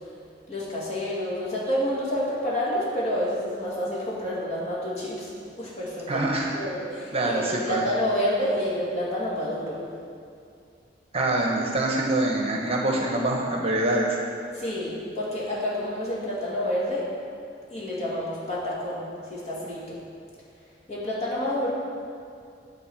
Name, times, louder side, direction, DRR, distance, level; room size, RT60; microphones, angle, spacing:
voice 1, 0.5-5.3 5.6-6.2 6.5-9.8 14.5-17.1 17.7-19.0 19.3-20.0 20.9-21.7, equal, 35° left, -7 dB, 2.4 m, -28 dB
voice 2, 6.1-6.5 7.1-7.9 11.1-14.2, right 2 dB, 35° right, -1 dB, 0.9 m, -25 dB
10.0 x 4.1 x 7.0 m, 2.4 s
head